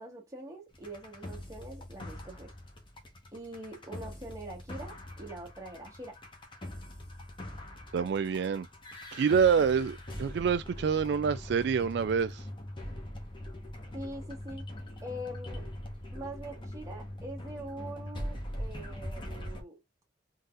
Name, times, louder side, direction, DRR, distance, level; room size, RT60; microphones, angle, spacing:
voice 1, 0.0-2.5 3.3-6.2 13.9-14.7 15.0-15.7 16.1-19.8, right 1 dB, 15° right, 1.8 m, -43 dB
sound 1, 0.7-19.6, left 1 dB, 25° left, 1.2 m, -42 dB
voice 2, 7.9-8.7 9.1-12.4, right 6 dB, 60° right, 0.3 m, -27 dB
3.9 x 3.9 x 2.5 m
head